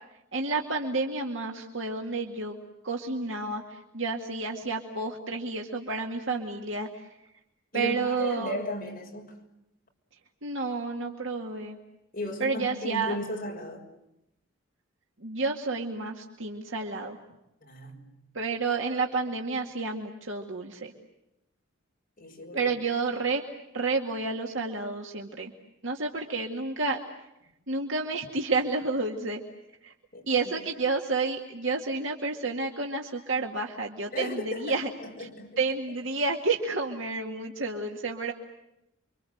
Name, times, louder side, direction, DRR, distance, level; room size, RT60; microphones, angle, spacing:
voice 1, 0.3-2.6 2.8-7.0 7.7-8.6 10.4-11.8 12.4-13.2 15.2-17.2 18.3-20.9 22.5-23.4 23.7-25.5 25.8-27.0 27.7-29.4 29.8-29.9 30.3-34.9 35.2-35.3 35.6-38.3, right 3 dB, 65° right, 2.2 m, -30 dB
voice 2, 7.7-9.3 12.1-13.8 17.6-18.1 22.2-22.8 30.1-30.6 34.1-35.6, left 1 dB, 40° left, 6.1 m, -36 dB
29.5 x 25.0 x 7.9 m
head